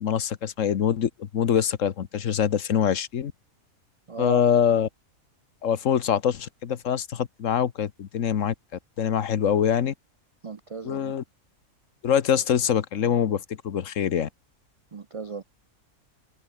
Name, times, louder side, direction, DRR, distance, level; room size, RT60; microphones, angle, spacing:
voice 1, 0.0-3.3 4.2-4.9 5.6-8.5 9.0-9.9 10.8-11.2 12.0-14.3, left 8 dB, 65° left, 1.4 m, -24 dB
voice 2, 4.1-4.4 10.4-11.1 14.9-15.4, right 4 dB, 60° right, 0.3 m, -35 dB
omnidirectional pair, 1.5 m